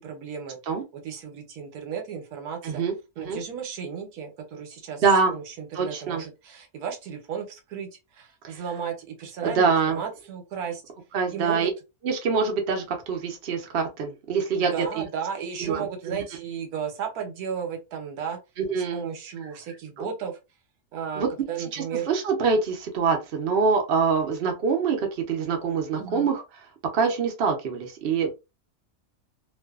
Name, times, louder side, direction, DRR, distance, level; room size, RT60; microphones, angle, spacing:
voice 1, 0.0-0.6 0.9-2.8 3.2-5.0 5.3-10.8 11.3-11.7 14.6-18.4 18.9-20.4 20.9-22.1 25.9-26.3, right 7 dB, 85° right, 1.2 m, -34 dB
voice 2, 2.6-3.4 5.0-5.3 5.7-6.2 8.4-8.6 9.4-10.0 11.1-11.7 12.0-15.0 15.6-16.2 18.6-19.1 20.0-20.1 21.2-21.3 21.7-26.4 26.9-28.3, right 5 dB, 55° right, 0.7 m, -25 dB
2.5 x 2.3 x 2.3 m
omnidirectional pair, 1.5 m